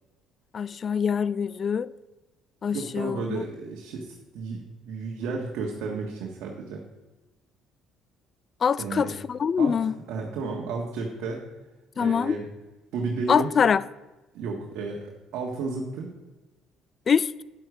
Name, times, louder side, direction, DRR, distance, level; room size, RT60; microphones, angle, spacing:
voice 1, 0.5-1.9 2.6-3.4 8.6-9.9 12.0-12.4 13.3-13.8 17.1-17.4, left 7 dB, 45° left, 0.4 m, -24 dB
voice 2, 2.7-6.8 8.8-9.1 9.6-9.7 10.1-11.4 12.0-12.5 12.9-13.5 14.3-16.1, right 4 dB, 70° right, 1.5 m, -32 dB
9.7 x 7.9 x 4.9 m
supercardioid pair, 70°, 0 cm